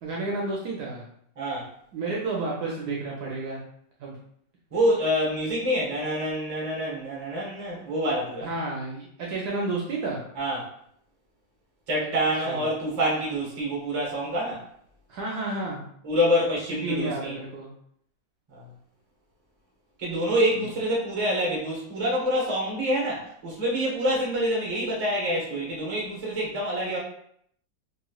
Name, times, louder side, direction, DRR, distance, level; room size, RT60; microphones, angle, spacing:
voice 1, 0.0-1.1 1.9-3.6 4.0-4.2 8.4-10.2 12.0-12.1 12.4-12.7 15.1-15.8 16.8-17.7 20.5-20.7, right 2 dB, 70° right, -3 dB, 1.0 m, -31 dB
voice 2, 1.4-1.7 4.7-8.5 10.4-10.7 11.9-14.6 16.0-17.4 18.5-18.7 20.0-27.0, equal, 30° right, -4 dB, 0.6 m, -26 dB
3.1 x 2.9 x 2.3 m, 0.68 s
omnidirectional pair, 2.0 m